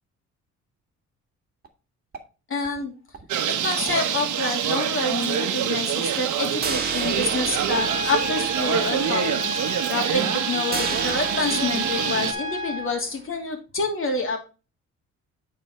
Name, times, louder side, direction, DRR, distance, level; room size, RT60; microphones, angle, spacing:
sound 1, 1.6-1.7 2.1-2.2 2.6-2.8 3.1-3.2 3.6-3.7 4.1-4.2 4.6-4.7 5.1-5.2 5.6-5.7 6.1-6.3 6.6-13.3, right 4 dB, 30° right, 1.9 m, -35 dB
voice 1, 2.5-2.9 3.5-9.6 9.9-14.4, left 3 dB, 45° left, 3 dB, 2.7 m, -27 dB
Bird, 3.3-12.3, right 9 dB, 75° right, 1.2 m, -26 dB
Trumpet, 7.7-12.9, left 1 dB, 25° left, 5.1 m, -32 dB
8.9 x 4.4 x 4.3 m, 0.32 s
cardioid pair, 90°, 30 cm